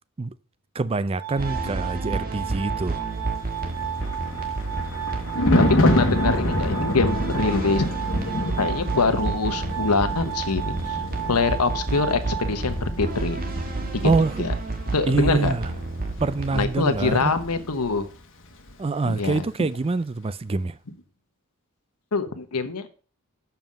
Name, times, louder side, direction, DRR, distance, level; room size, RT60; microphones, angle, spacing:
voice 1, 0.7-3.1 14.0-14.4 15.1-15.7 16.2-17.3 18.8-20.8, right 3 dB, 25° right, 0.4 m, -25 dB
Glass, 1.1-13.2, right 10 dB, 70° right, 1.4 m, -34 dB
sound 1, 1.4-16.7, right 2 dB, 40° right, 1.5 m, -30 dB
Thunder, 3.6-18.2 18.4-18.7, left 1 dB, 60° left, 1.3 m, -28 dB
voice 2, 5.6-7.9 8.6-11.0 11.3-13.4 13.9-14.1 14.4-14.5 14.9-15.5 16.5-18.1 19.0-19.4 22.1-22.9, left 4 dB, 90° left, 1.1 m, -24 dB
7.1 x 5.7 x 7.5 m
head